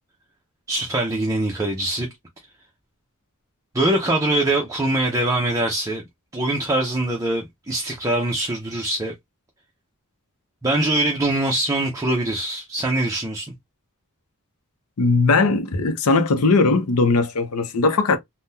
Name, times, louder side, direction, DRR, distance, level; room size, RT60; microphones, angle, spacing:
voice 1, 0.7-2.1 3.7-6.0 6.3-9.1 10.6-13.5, right 1 dB, 15° right, 0.6 m, -23 dB
voice 2, 15.0-18.2, left 3 dB, 85° left, 0.7 m, -19 dB
3.6 x 2.2 x 2.6 m
head